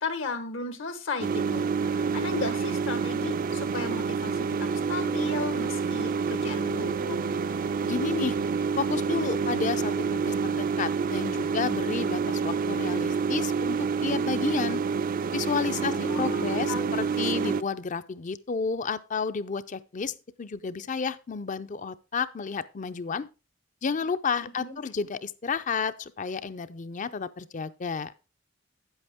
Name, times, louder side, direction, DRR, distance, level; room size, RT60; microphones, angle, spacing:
voice 1, 0.0-7.2 15.7-16.9 17.4-17.5 24.6-24.8, left 3 dB, 75° left, 1.3 m, -35 dB
sound 1, 1.2-17.6, right 5 dB, 45° right, 0.4 m, -28 dB
voice 2, 7.8-8.5 8.8-14.8 15.3-23.3 23.8-28.1, left 5 dB, 40° left, 0.5 m, -31 dB
9.1 x 8.0 x 3.5 m
head